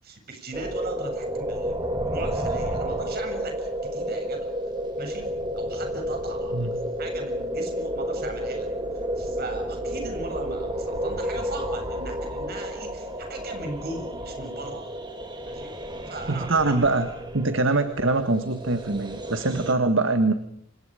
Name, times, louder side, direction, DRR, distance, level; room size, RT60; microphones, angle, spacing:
voice 1, 0.0-4.5 5.0-5.2 5.5-8.7 8.9-14.8 15.5-15.7 16.1-16.5 17.7-17.8, right 2 dB, 50° right, 3 dB, 7.6 m, -38 dB
sound 1, 0.5-19.7, equal, 20° right, 3.3 m, -31 dB
voice 2, 16.3-17.1 17.3-20.3, right 3 dB, 65° right, 9 dB, 1.7 m, -23 dB
29.5 x 26.5 x 5.2 m, 0.66 s
head